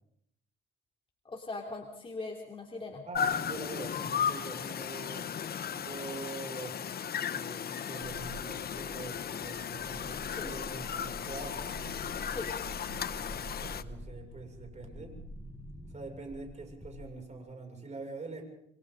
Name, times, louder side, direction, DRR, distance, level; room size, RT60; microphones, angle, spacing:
voice 1, 1.2-3.0 10.4-10.5 12.3-12.5, left 3 dB, 25° left, 1 dB, 3.1 m, -40 dB
sound 1, 3.1-13.8, left 8 dB, 50° left, 0.9 m, -35 dB
voice 2, 3.1-5.3 5.7-6.8 7.3-11.7 13.1-15.2 15.9-18.4, right 3 dB, 35° right, 2 dB, 6.5 m, -44 dB
sound 2, 8.0-17.4, left 1 dB, 5° left, 7.0 m, -47 dB
28.5 x 23.0 x 3.9 m, 0.74 s
cardioid pair, 90°, 20 cm